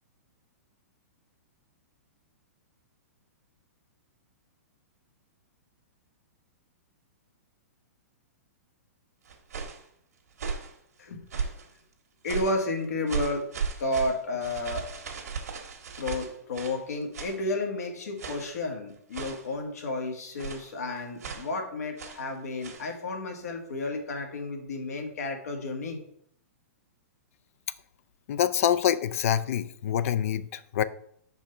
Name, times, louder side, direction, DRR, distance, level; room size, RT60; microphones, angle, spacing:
sound 1, 9.2-9.8 10.3-10.7 11.3-11.7 12.2-12.6 13.1-16.8 17.1-17.4 18.2-18.6 19.1-19.5 20.4-20.7 21.2-21.5 22.0-22.3 22.6-22.9, right 5 dB, 80° right, 1.4 m, -36 dB
voice 1, 12.2-13.5 13.8-14.8 16.0-26.0, left 2 dB, 80° left, 3 dB, 1.6 m, -32 dB
voice 2, 28.3-30.8, left 10 dB, 60° left, 14 dB, 0.4 m, -26 dB
5.5 x 4.7 x 4.4 m, 0.67 s
hypercardioid pair, 140°, 8 cm